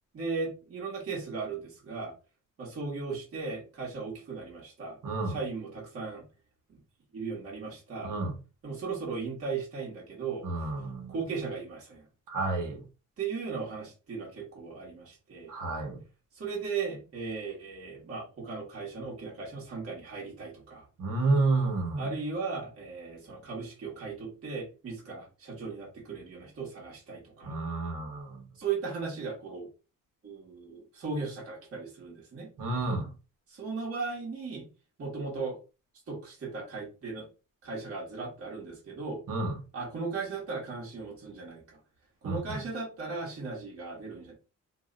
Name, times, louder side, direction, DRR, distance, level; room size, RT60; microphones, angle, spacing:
voice 1, 0.1-2.1 2.6-5.0 5.2-6.2 7.1-8.1 8.6-10.5 11.1-12.1 13.2-15.5 16.3-20.8 22.0-27.5 28.6-29.7 30.2-32.5 33.5-34.7 35.0-35.6 36.1-37.3 37.6-39.2 39.7-41.8 42.2-44.3, right 4 dB, 45° right, 1.2 m, -37 dB
voice 2, 5.0-5.4 8.0-8.3 10.4-11.1 12.3-12.8 15.5-16.0 21.0-22.1 27.4-28.4 32.6-33.1 39.3-39.5 42.2-42.6, right 3 dB, 75° right, 1.0 m, -30 dB
2.6 x 2.1 x 3.7 m
wide cardioid pair, 150°, 32 cm